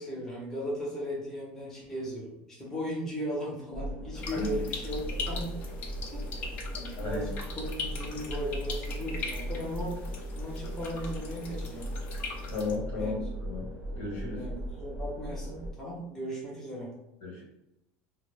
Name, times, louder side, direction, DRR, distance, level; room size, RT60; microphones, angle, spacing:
voice 1, 0.0-5.6 6.1-6.3 6.7-7.3 7.6-10.0 10.3-11.9 12.9-13.1 14.3-16.9, equal, 10° left, -5 dB, 0.7 m, -37 dB
sound 1, 3.7-15.7, equal, 30° right, 0.6 m, -38 dB
sound 2, 4.1-12.7, left 4 dB, 45° left, 0.5 m, -41 dB
voice 2, 12.5-13.1 13.4-13.7 14.0-14.4 17.2-17.4, left 4 dB, 65° left, -4 dB, 1.1 m, -34 dB
2.1 x 2.0 x 3.2 m, 0.87 s
cardioid pair, 145°, 4 cm